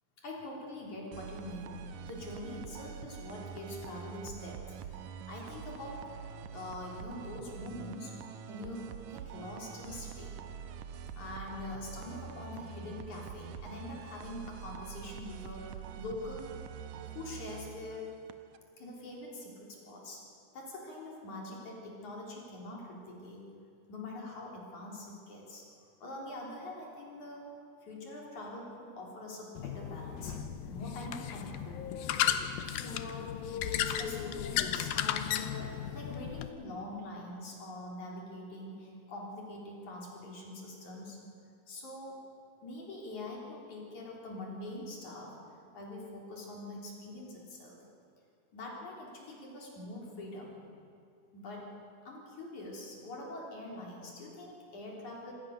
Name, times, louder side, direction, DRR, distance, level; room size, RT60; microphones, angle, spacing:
voice 1, 0.2-4.6 5.3-6.0 6.5-8.1 8.5-10.4 11.1-16.5 17.1-18.1 18.8-20.2 20.5-23.5 23.9-25.6 26.0-27.5 27.8-30.4 30.7-32.2 32.7-33.3 33.7-41.2 41.7-42.3 42.6-45.4 45.7-47.8 48.5-50.6 51.3-51.7 52.0-55.3, left 2 dB, 55° left, -2 dB, 5.1 m, -44 dB
sound 1, 1.1-18.6, right 7 dB, 70° right, 1.9 m, -45 dB
sound 2, 29.6-36.5, left 10 dB, 85° left, 2.7 m, -34 dB
27.0 x 19.5 x 6.7 m, 2.4 s
omnidirectional pair, 4.1 m